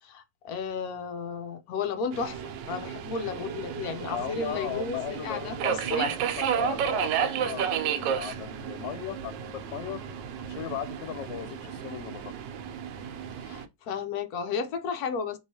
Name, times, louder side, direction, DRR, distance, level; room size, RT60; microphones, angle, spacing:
voice 1, 0.0-2.4 2.7-6.1 13.3-15.4, left 5 dB, 65° left, 1.1 m, -33 dB
Subway metro underground, 2.1-13.7, right 8 dB, 90° right, 1.3 m, -32 dB
voice 2, 4.1-10.0 10.5-12.3, left 11 dB, 85° left, 1.3 m, -37 dB
3.7 x 3.0 x 2.7 m
omnidirectional pair, 1.9 m